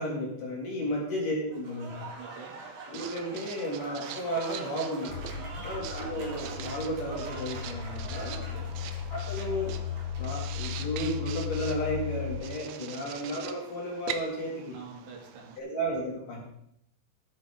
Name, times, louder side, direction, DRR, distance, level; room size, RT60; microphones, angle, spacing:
voice 1, 0.0-2.1 2.9-5.2 5.6-8.4 9.1-9.8 10.2-14.8 15.6-16.4, equal, 50° left, -2 dB, 3.3 m, -33 dB
Applause / Crowd, 1.5-10.3, right 3 dB, 50° right, 2.1 m, -45 dB
voice 2, 2.2-2.5 5.3-5.7 8.3-8.7 12.8-13.1 14.7-15.6, right 5 dB, 65° right, -2 dB, 4.5 m, -47 dB
Writing, 2.3-15.6, right 10 dB, 85° right, 2.1 m, -44 dB
sound 1, 5.1-12.4, left 8 dB, 90° left, 3.5 m, -36 dB
13.5 x 10.5 x 3.6 m, 0.75 s
omnidirectional pair, 5.3 m